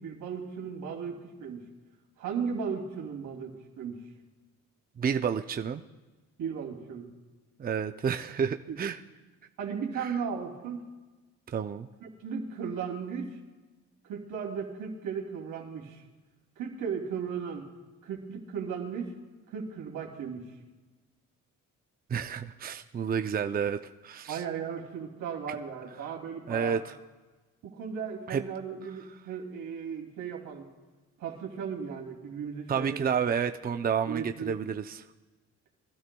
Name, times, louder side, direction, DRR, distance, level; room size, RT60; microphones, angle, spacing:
voice 1, 0.0-1.6 2.2-4.0 6.4-7.1 8.7-8.8 9.6-10.8 12.0-13.3 14.0-16.0 16.6-17.7 18.0-19.1 19.5-20.4 24.3-26.8 27.6-30.7 31.2-33.1 34.1-34.5, right 6 dB, 85° right, 0 dB, 2.8 m, -36 dB
voice 2, 5.0-5.8 7.6-9.0 10.0-10.1 11.5-11.9 22.1-23.8 24.0-24.4 26.5-26.8 28.3-28.4 32.7-35.0, right 7 dB, 30° right, 8 dB, 0.5 m, -30 dB
23.0 x 12.5 x 2.3 m, 1.2 s
cardioid pair, 90°, 30 cm